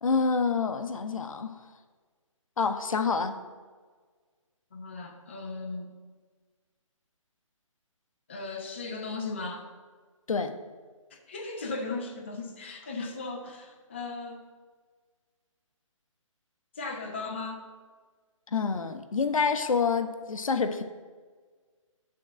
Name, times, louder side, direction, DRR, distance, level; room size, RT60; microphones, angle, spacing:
voice 1, 0.0-1.6 2.6-3.4 10.3-10.5 18.5-20.8, left 5 dB, 80° left, 8 dB, 0.8 m, -27 dB
voice 2, 4.7-5.9 8.3-9.7 11.1-14.4 16.8-17.6, left 3 dB, 20° left, 1 dB, 0.5 m, -37 dB
8.8 x 3.8 x 6.2 m, 1.5 s
hypercardioid pair, 175°, 17 cm